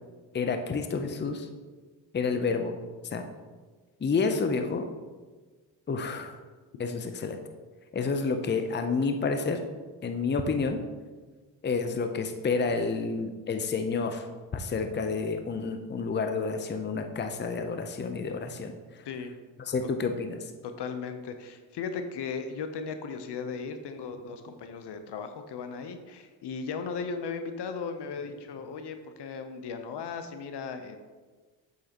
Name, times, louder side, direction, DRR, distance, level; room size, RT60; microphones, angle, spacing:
voice 1, 0.3-1.5 2.1-2.8 3.1-3.3 4.0-4.9 5.9-6.4 6.8-7.4 7.9-9.6 10.0-10.8 11.6-14.3 14.5-18.7 19.7-20.4, left 4 dB, 25° left, 7 dB, 0.7 m, -29 dB
voice 2, 20.6-31.0, left 5 dB, 60° left, 8 dB, 0.9 m, -37 dB
8.0 x 6.6 x 3.0 m, 1.4 s
supercardioid pair, 60°, 47 cm